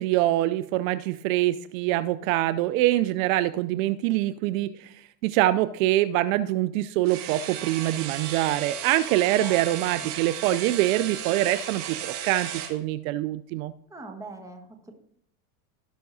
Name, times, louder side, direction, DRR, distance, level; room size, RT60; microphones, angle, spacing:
voice 1, 0.0-4.9 5.2-13.7, right 15 dB, 65° right, 14 dB, 0.5 m, -24 dB
sound 1, 7.0-12.8, right 10 dB, 80° right, 2.1 m, -35 dB
voice 2, 13.9-14.9, right 3 dB, 5° right, 3 dB, 1.3 m, -42 dB
17.0 x 5.7 x 2.7 m, 0.72 s
supercardioid pair, 130°, 45 cm